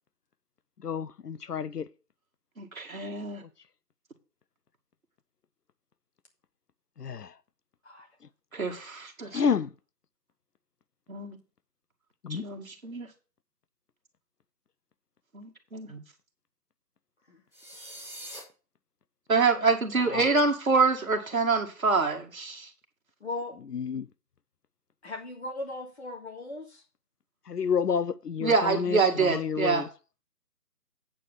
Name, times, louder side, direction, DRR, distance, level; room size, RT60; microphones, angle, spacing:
voice 1, 0.8-1.8 7.0-7.3 9.3-9.7 12.2-12.4 20.1-20.2 23.7-24.1 27.5-29.9, left 6 dB, 70° left, 0.6 m, -29 dB
voice 2, 2.6-3.4 8.5-9.4 11.1-11.4 12.3-13.1 15.3-16.0 19.3-22.7 28.4-29.9, right 4 dB, 55° right, 2.2 m, -26 dB
sound 1, 17.5-18.4, right 1 dB, 10° left, 3.5 m, -43 dB
voice 3, 23.2-23.6 25.0-26.8, left 2 dB, 40° left, 2.4 m, -38 dB
8.7 x 4.8 x 7.0 m
figure-of-eight pair, 175°, 49 cm